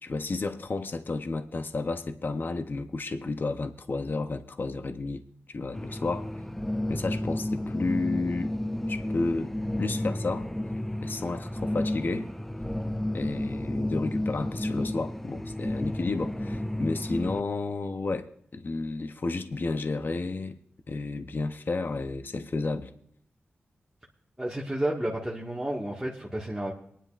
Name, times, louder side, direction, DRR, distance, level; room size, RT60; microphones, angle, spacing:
voice 1, 0.0-5.2 5.5-6.3 6.9-8.5 8.9-9.5 9.8-10.5 11.0-12.3 13.1-20.6 20.9-22.9, left 3 dB, 55° left, 8 dB, 0.8 m, -32 dB
sound 1, 5.7-17.4, left 1 dB, 5° left, 0.5 m, -32 dB
voice 2, 24.4-26.7, right 1 dB, 10° right, -5 dB, 1.7 m, -31 dB
22.5 x 10.5 x 2.5 m, 0.68 s
cardioid pair, 55°, 4 cm